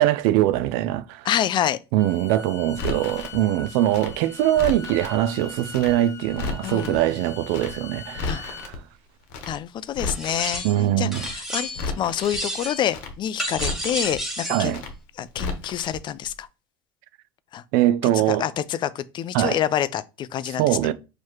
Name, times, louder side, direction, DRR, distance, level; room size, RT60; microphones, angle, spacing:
voice 1, 0.0-1.3 1.9-8.8 10.6-11.2 14.5-14.8 17.7-18.5 19.3-19.6 20.6-20.9, right 13 dB, 70° right, 0.4 m, -22 dB
voice 2, 1.3-1.8 6.6-7.0 8.2-8.4 9.5-10.6 11.0-11.7 12.0-14.8 15.2-16.5 17.5-17.6 18.1-20.8, left 10 dB, 40° left, 0.4 m, -27 dB
Bowed string instrument, 2.0-8.7, left 6 dB, 25° left, 0.9 m, -41 dB
Crackle, 2.8-3.4 3.9-5.2 5.7-5.9 6.2-7.0 7.5-7.7 8.0-8.8 9.3-9.5 9.8-10.6 11.1-11.3 11.6-12.4 12.9-13.1 13.4-14.2 14.7-14.9 15.2-16.0 16.2-16.3, left 4 dB, 70° left, 1.0 m, -33 dB
sound 1, 10.1-10.8 11.1-11.9 12.2-12.9 13.4-14.7, equal, 5° right, 1.1 m, -31 dB
4.6 x 3.0 x 2.9 m
supercardioid pair, 90°, 12 cm